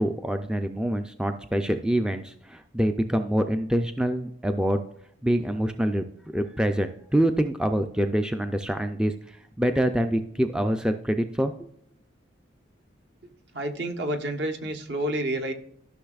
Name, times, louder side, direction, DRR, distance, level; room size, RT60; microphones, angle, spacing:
voice 1, 0.0-4.8 5.2-6.0 6.3-11.5, right 1 dB, 5° right, 7 dB, 0.3 m, -25 dB
voice 2, 13.5-15.5, right 1 dB, 60° right, 4 dB, 1.1 m, -29 dB
13.5 x 6.0 x 2.4 m, 0.68 s
head